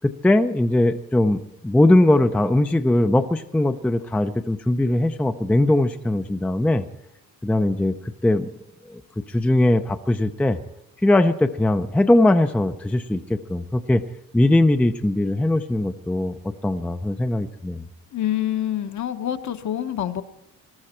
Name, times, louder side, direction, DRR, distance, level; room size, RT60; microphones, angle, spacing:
voice 1, 0.0-6.8 7.4-8.5 8.9-9.0 9.3-10.6 11.0-14.0 14.3-16.3 16.6-17.8, left 1 dB, 5° left, 8 dB, 0.4 m, -20 dB
voice 2, 18.1-20.2, left 11 dB, 55° left, 8 dB, 1.1 m, -26 dB
20.0 x 13.5 x 4.4 m, 0.84 s
cardioid pair, 150°, 35 cm